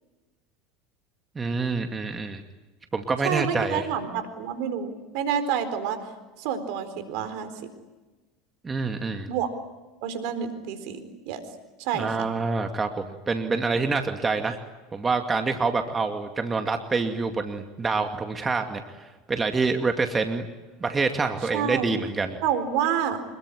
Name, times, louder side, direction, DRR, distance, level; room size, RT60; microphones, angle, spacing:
voice 1, 1.4-2.4 2.9-3.9 8.6-9.3 11.9-14.6 14.9-20.5 20.8-22.4, right 4 dB, 20° right, 5 dB, 2.3 m, -26 dB
voice 2, 3.2-6.0 6.4-7.5 9.3-9.5 10.0-11.4 11.8-12.3 21.5-21.9 22.4-23.2, right 8 dB, 65° right, 10 dB, 4.1 m, -28 dB
26.5 x 22.0 x 10.0 m, 1.2 s
hypercardioid pair, 80°, 0 cm